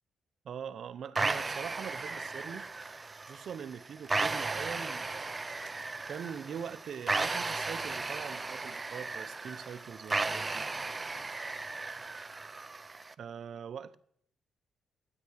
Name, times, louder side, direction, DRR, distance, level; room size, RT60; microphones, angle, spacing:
voice 1, 0.4-2.7 3.3-5.3 5.7-5.8 6.1-10.6 13.2-14.0, right 8 dB, 60° right, 0.8 m, -42 dB
sound 1, 1.2-13.1, right 3 dB, 20° right, 0.6 m, -35 dB
12.5 x 9.7 x 6.4 m
cardioid pair, 125°, 0 cm